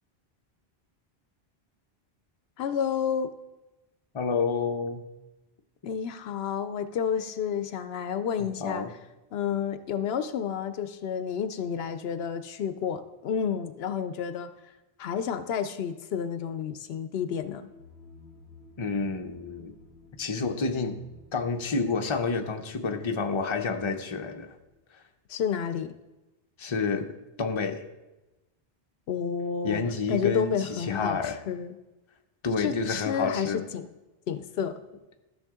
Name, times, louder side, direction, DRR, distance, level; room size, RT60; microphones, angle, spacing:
voice 1, 2.6-3.3 5.8-8.8 9.3-14.5 15.0-17.7 25.3-25.9 29.1-31.8 32.6-33.9 34.3-34.8, left 7 dB, 75° left, 11 dB, 0.8 m, -30 dB
voice 2, 4.1-5.0 8.4-8.9 18.8-19.7 20.2-21.0 21.3-24.5 26.6-27.1 27.4-27.8 29.6-31.3 32.4-33.6, left 4 dB, 30° left, 4 dB, 0.7 m, -29 dB
sound 1, 17.7-24.8, left 3 dB, 80° right, 3.1 m, -54 dB
13.5 x 6.2 x 3.6 m, 1.0 s
omnidirectional pair, 1.1 m